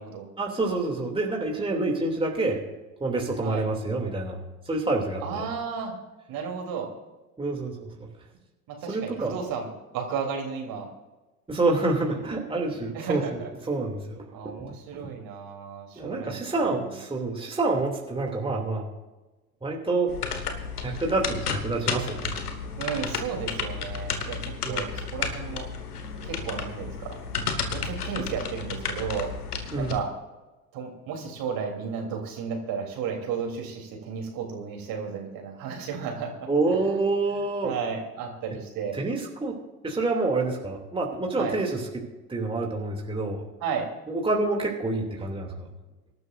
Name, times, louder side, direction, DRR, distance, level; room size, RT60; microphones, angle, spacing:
voice 1, 0.4-2.6 3.0-4.4 4.6-5.5 7.4-8.1 8.9-9.4 11.5-13.4 13.7-14.2 14.6-15.0 16.0-18.9 19.6-20.1 20.8-22.4 24.6-24.8 29.7-29.9 36.5-37.7 38.9-39.5 39.8-41.8 42.3-43.4 44.1-45.7, right 3 dB, 10° right, 0 dB, 2.7 m, -27 dB
voice 2, 5.2-5.9 6.3-6.9 8.7-10.9 12.9-13.5 14.3-16.4 22.7-25.7 26.2-27.2 27.7-29.3 29.7-30.1 30.7-36.5 37.4-39.0 41.4-41.6 43.6-43.9, right 6 dB, 50° right, 1 dB, 3.5 m, -33 dB
sound 1, 20.1-30.0, left 5 dB, 85° left, 1.6 m, -32 dB
25.5 x 12.5 x 2.6 m, 1.1 s
hypercardioid pair, 75°, 45 cm